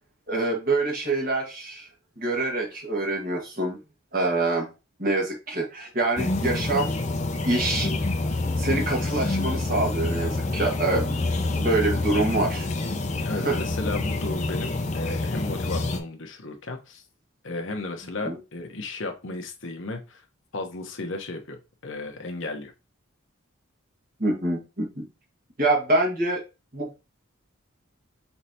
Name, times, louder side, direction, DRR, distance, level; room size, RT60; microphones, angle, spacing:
voice 1, 0.3-1.9 2.2-3.8 4.1-4.7 5.0-7.0 7.4-7.9 8.6-11.2 11.5-12.7 13.4-13.6 18.2-18.3 24.2-25.0 25.6-26.4 26.7-26.9, right 2 dB, 40° right, 0 dB, 1.7 m, -25 dB
sound 1, 6.2-16.0, left 2 dB, 35° left, 0.5 m, -27 dB
voice 2, 13.2-17.0 17.4-20.2 20.5-22.7, left 2 dB, 65° left, 4 dB, 1.0 m, -34 dB
5.7 x 3.3 x 2.8 m, 0.28 s
head